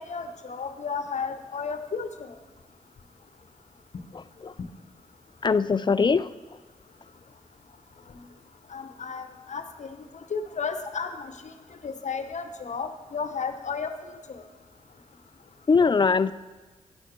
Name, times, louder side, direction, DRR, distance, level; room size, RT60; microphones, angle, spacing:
voice 1, 0.0-2.1 8.7-10.0 10.3-11.3 11.8-13.9, left 5 dB, 60° left, 9 dB, 0.9 m, -33 dB
voice 2, 4.1-4.6 5.4-6.6 15.7-16.3, left 5 dB, 35° left, 16 dB, 0.4 m, -22 dB
10.5 x 6.4 x 4.4 m, 1.3 s
cardioid pair, 45°, 14 cm